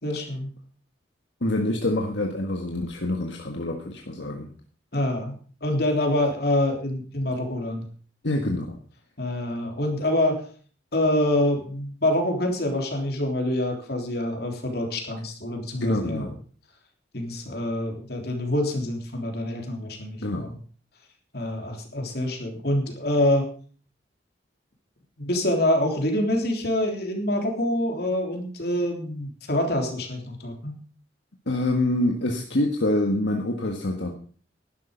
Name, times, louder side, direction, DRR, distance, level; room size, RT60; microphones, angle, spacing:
voice 1, 0.0-0.5 4.9-5.3 5.6-7.9 9.2-10.4 10.9-16.3 17.1-20.6 21.3-23.4 25.2-30.7, left 1 dB, 55° left, 3 dB, 3.3 m, -26 dB
voice 2, 1.4-4.5 8.2-8.8 15.8-16.3 20.2-20.5 31.5-34.1, left 1 dB, 75° left, 1 dB, 1.6 m, -26 dB
11.5 x 11.5 x 5.2 m, 0.43 s
head